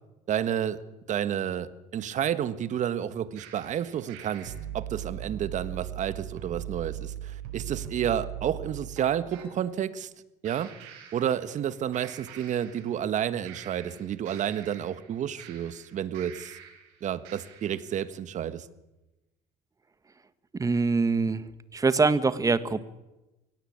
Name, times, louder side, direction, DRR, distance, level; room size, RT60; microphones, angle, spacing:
voice 1, 0.3-0.8 1.1-10.1 10.4-10.7 11.1-16.6 17.0-18.6, right 9 dB, 50° right, 14 dB, 1.5 m, -30 dB
sound 1, 3.4-9.5 10.4-11.7 11.9-13.1 13.4-16.9 17.2-17.9, right 11 dB, 90° right, 6.0 m, -41 dB
voice 2, 20.5-21.5 21.7-22.8, right 4 dB, 20° right, 14 dB, 1.5 m, -24 dB
24.0 x 17.5 x 8.7 m, 1.0 s
supercardioid pair, 100°, 16 cm